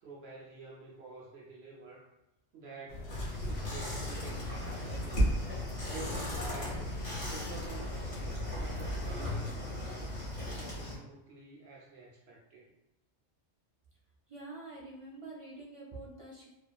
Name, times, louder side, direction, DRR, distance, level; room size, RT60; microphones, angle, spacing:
voice 1, 0.0-2.1 2.5-5.3 5.9-6.9 7.2-10.2 10.5-12.7, right 3 dB, 70° right, -3 dB, 0.8 m, -50 dB
sound 1, 2.9-9.2, left 2 dB, 70° left, 1.0 m, -43 dB
sound 2, 3.1-11.0, equal, 40° left, 1.2 m, -36 dB
voice 2, 14.3-16.5, right 2 dB, 45° right, -4 dB, 0.4 m, -46 dB
2.7 x 2.4 x 2.2 m, 0.89 s
omnidirectional pair, 1.2 m